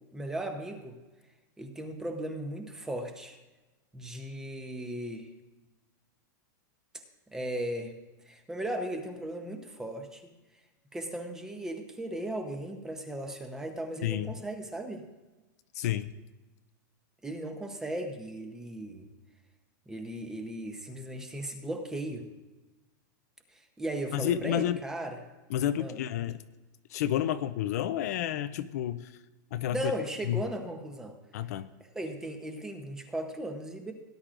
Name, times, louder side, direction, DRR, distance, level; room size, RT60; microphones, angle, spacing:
voice 1, 0.1-0.9 1.6-3.4 3.9-5.3 7.3-8.0 8.3-10.3 10.9-15.0 17.2-19.1 19.9-22.3 23.5-25.2 25.8-26.0 29.7-31.2 31.9-33.9, right 1 dB, 5° right, 5 dB, 0.8 m, -37 dB
voice 2, 14.0-14.3 15.7-16.1 24.1-24.8 25.5-26.4 26.9-29.1 29.5-29.9 30.3-30.4 31.3-31.7, left 11 dB, 55° left, 12 dB, 0.5 m, -30 dB
17.5 x 10.5 x 2.5 m, 1.2 s
supercardioid pair, 170°, 10 cm